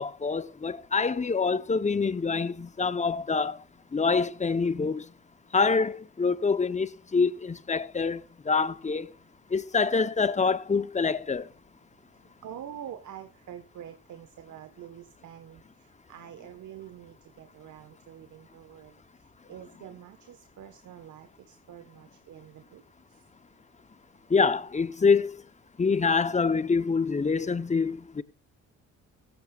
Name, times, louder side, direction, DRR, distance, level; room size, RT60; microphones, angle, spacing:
voice 1, 0.0-3.6 3.9-5.1 5.5-9.1 9.5-11.5 24.3-25.3 25.8-28.2, left 4 dB, 25° left, 1.0 m, -26 dB
voice 2, 12.1-18.9 19.2-22.8 23.1-23.2, right 10 dB, 75° right, 1.6 m, -46 dB
16.5 x 14.5 x 2.5 m
cardioid pair, 90°, 30 cm